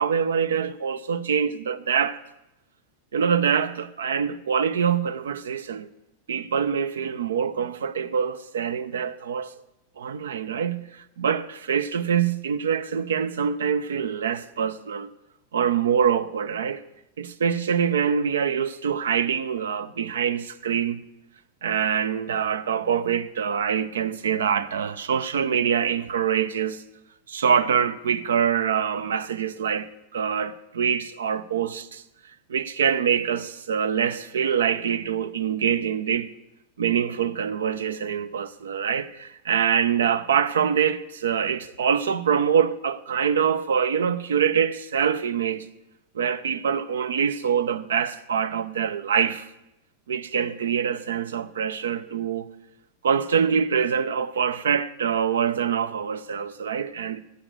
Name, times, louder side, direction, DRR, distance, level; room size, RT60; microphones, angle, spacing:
voice 1, 0.0-2.2 3.1-5.9 6.3-9.5 10.0-15.1 15.5-16.8 17.2-21.0 21.6-26.8 27.3-32.0 32.5-36.3 36.8-45.6 46.1-49.5 50.1-52.5 53.0-57.2, right 7 dB, 65° right, 0.6 m, -25 dB
9.8 x 8.1 x 8.1 m
figure-of-eight pair, 90°, 0 cm